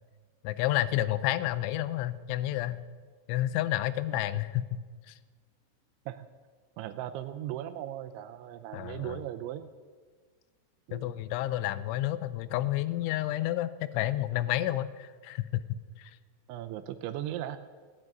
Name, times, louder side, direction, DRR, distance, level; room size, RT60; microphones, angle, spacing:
voice 1, 0.4-2.8 3.3-4.8 5.1-5.2 8.7-9.2 10.9-15.6 16.0-16.1, left 14 dB, 80° left, 14 dB, 2.9 m, -30 dB
voice 2, 6.8-9.7 10.9-11.1 16.5-17.6, right 12 dB, 80° right, 9 dB, 2.8 m, -38 dB
16.0 x 9.9 x 9.1 m, 1.6 s
omnidirectional pair, 5.7 m